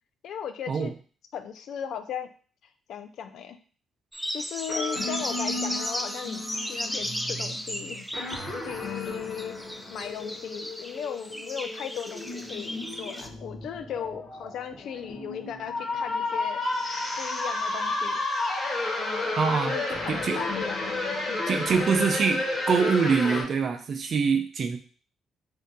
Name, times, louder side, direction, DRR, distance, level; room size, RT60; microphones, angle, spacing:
voice 1, 0.2-0.9 1.3-2.3 2.9-3.6 4.3-8.1 8.6-9.6 9.9-16.6 17.2-18.1 19.0-20.9 21.3-21.4, left 8 dB, 75° left, 9 dB, 0.3 m, -37 dB
sound 1, 4.1-13.3, equal, 5° left, 0.4 m, -35 dB
sound 2, 4.7-23.4, left 2 dB, 40° left, 1.2 m, -32 dB
voice 2, 19.4-19.7 20.1-20.4 21.5-24.8, right 5 dB, 55° right, 6 dB, 0.5 m, -24 dB
2.7 x 2.2 x 3.8 m, 0.41 s
cardioid pair, 90°, 0 cm